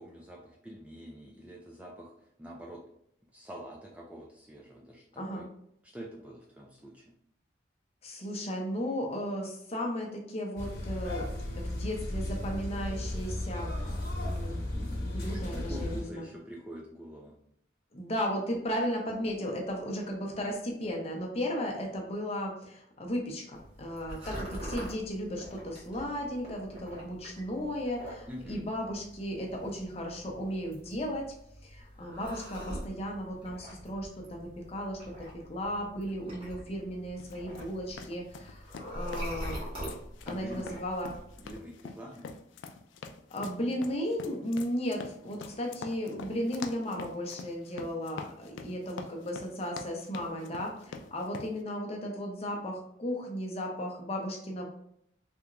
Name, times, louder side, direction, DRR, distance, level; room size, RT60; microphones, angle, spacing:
voice 1, 0.0-2.8 3.3-5.4 5.8-7.0 15.3-17.3 28.3-28.7 40.3-40.8 41.4-42.3, equal, 5° right, -2 dB, 0.3 m, -45 dB
voice 2, 8.0-13.8 14.2-16.3 17.9-31.3 31.6-39.6 40.3-41.1 43.3-54.7, equal, 35° left, 0 dB, 0.7 m, -35 dB
sound 1, 10.6-16.0, left 1 dB, 55° left, 1.0 m, -35 dB
sound 2, 23.5-41.6, equal, 30° right, 1.1 m, -44 dB
sound 3, 37.2-51.5, left 5 dB, 85° left, 0.3 m, -45 dB
3.4 x 2.9 x 2.5 m, 0.74 s
head